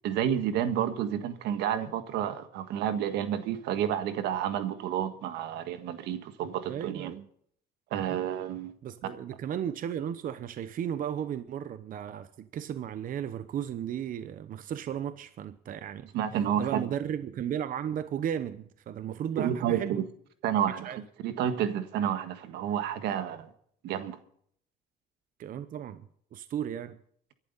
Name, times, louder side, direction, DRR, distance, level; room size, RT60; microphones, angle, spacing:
voice 1, 0.0-7.1 7.9-8.7 16.1-16.9 19.4-20.0 20.4-23.5 23.8-24.2, right 9 dB, 85° right, 1.6 m, -30 dB
voice 2, 6.7-7.3 8.1-8.3 8.8-16.1 16.6-20.0 20.7-21.0 25.4-27.0, right 9 dB, 55° right, 0.9 m, -35 dB
24.0 x 11.5 x 4.1 m
cardioid pair, 110°, 17 cm